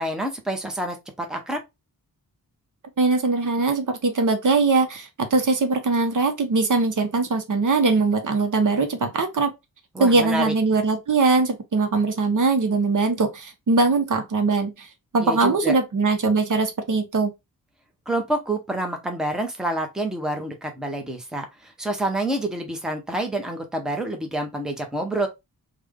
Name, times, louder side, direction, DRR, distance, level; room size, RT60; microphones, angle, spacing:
voice 1, 0.0-1.6 9.9-10.5 15.2-15.8 18.1-25.3, right 1 dB, ahead, 0.7 m, -28 dB
voice 2, 3.0-9.5 10.0-14.9 15.1-17.3, right 3 dB, 55° right, 0.7 m, -21 dB
3.3 x 2.2 x 3.5 m
wide cardioid pair, 105°, 37 cm